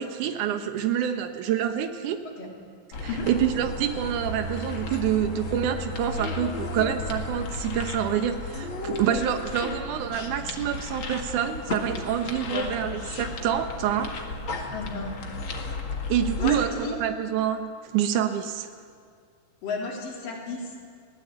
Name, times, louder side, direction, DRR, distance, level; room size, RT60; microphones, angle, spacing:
voice 1, 0.0-2.2 3.0-14.2 16.1-17.7 17.9-18.7, right 9 dB, 70° right, 7 dB, 2.6 m, -27 dB
sound 1, 2.9-16.7, left 3 dB, 45° left, 2.3 m, -34 dB
voice 2, 12.4-12.8 14.7-15.4 16.4-17.0 19.6-20.8, left 3 dB, 80° left, -1 dB, 5.0 m, -33 dB
22.5 x 17.0 x 8.2 m, 2.2 s
omnidirectional pair, 3.8 m